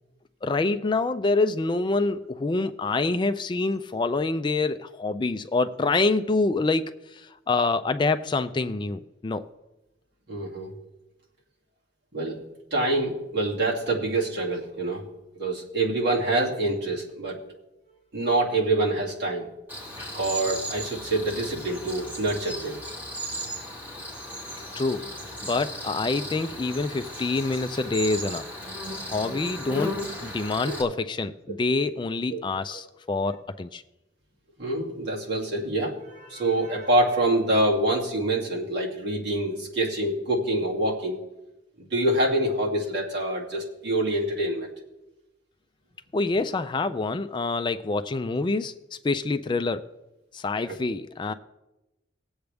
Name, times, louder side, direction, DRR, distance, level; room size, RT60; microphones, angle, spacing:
voice 1, 0.4-9.4 24.8-25.1 25.4-28.5 29.0-33.8 46.1-49.9 50.3-51.3, left 3 dB, 25° left, 10 dB, 0.3 m, -26 dB
voice 2, 10.3-10.7 12.1-12.4 12.7-15.0 15.3-17.4 18.1-19.5 20.1-22.8 30.5-30.9 32.3-32.4 34.6-41.2 41.8-44.7, right 2 dB, 55° right, -3 dB, 2.4 m, -26 dB
Cricket, 19.7-30.8, equal, 10° right, 2.7 m, -36 dB
19.0 x 7.9 x 3.4 m, 0.97 s
head